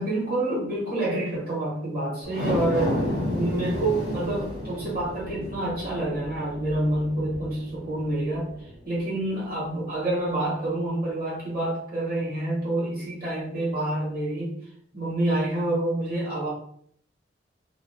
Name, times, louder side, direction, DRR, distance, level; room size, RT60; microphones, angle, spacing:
voice 1, 0.0-3.0 3.3-8.5 8.8-14.6 14.9-16.5, right 1 dB, 50° right, -6 dB, 1.2 m, -27 dB
sound 1, 2.2-8.7 9.2-9.3, left 1 dB, 85° right, 1.4 m, -31 dB
2.5 x 2.0 x 2.7 m, 0.64 s
head